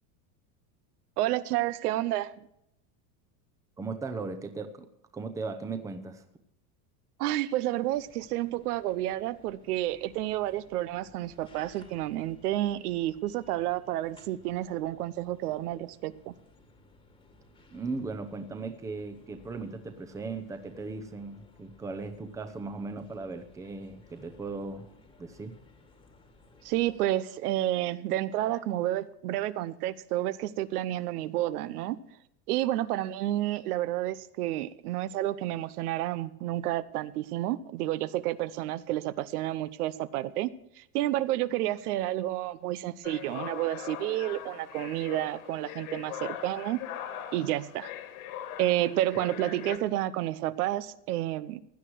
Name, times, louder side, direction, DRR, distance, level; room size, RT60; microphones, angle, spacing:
voice 1, 1.2-2.5 7.2-16.3 26.6-32.0 32.5-40.5 40.8-46.8 47.3-47.9 48.6-51.6, right 14 dB, 85° right, 16 dB, 1.0 m, -30 dB
voice 2, 3.8-4.9 5.1-6.2 17.7-24.9 25.2-25.6, right 3 dB, 5° right, 8 dB, 0.7 m, -37 dB
sound 1, 7.9-27.1, left 3 dB, 10° left, 1.5 m, -59 dB
sound 2, 43.0-49.8, left 10 dB, 65° left, 2.2 m, -41 dB
16.5 x 11.0 x 4.6 m, 0.79 s
supercardioid pair, 165°, 44 cm